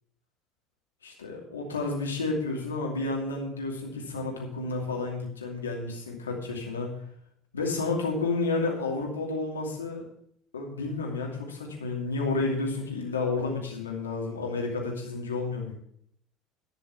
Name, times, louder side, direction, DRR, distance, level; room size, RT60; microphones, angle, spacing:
voice 1, 1.0-7.0 7.5-10.1 10.5-15.7, left 3 dB, 90° left, 0 dB, 2.7 m, -31 dB
12.0 x 6.1 x 7.2 m, 0.68 s
hypercardioid pair, 70°, 0 cm